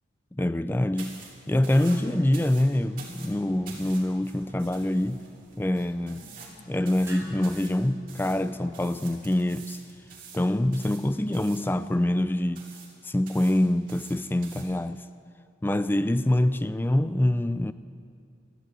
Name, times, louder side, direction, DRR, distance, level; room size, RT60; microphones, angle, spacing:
voice 1, 0.3-1.2 1.5-5.2 5.6-6.3 6.7-9.8 10.3-12.6 13.0-15.0 15.6-17.7, left 1 dB, 10° left, 13 dB, 0.3 m, -25 dB
sound 1, 1.0-8.9, left 1 dB, 15° right, 2.2 m, -51 dB
sound 2, 1.0-14.6, right 5 dB, 45° right, 2.8 m, -48 dB
sound 3, 2.0-9.6, left 1 dB, 35° left, 4.4 m, -54 dB
14.0 x 12.0 x 7.6 m, 2.3 s
head